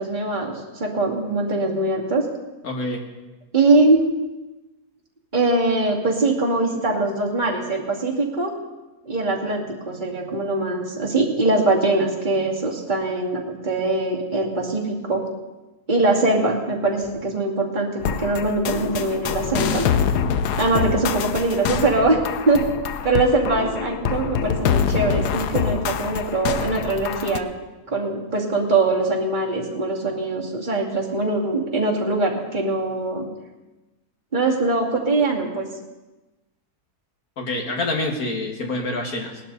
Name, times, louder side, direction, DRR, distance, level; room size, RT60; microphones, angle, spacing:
voice 1, 0.0-2.2 3.5-4.0 5.3-8.5 9.1-15.2 15.9-19.9 20.6-22.2 22.5-22.7 23.0-27.5 27.9-33.3 34.3-35.7, right 2 dB, 30° right, -3 dB, 2.7 m, -22 dB
voice 2, 2.6-3.0 37.4-39.4, left 2 dB, 65° left, 2 dB, 2.4 m, -26 dB
sound 1, 18.0-27.4, left 7 dB, 80° left, 1.3 m, -25 dB
19.0 x 11.5 x 4.1 m, 1.1 s
omnidirectional pair, 1.7 m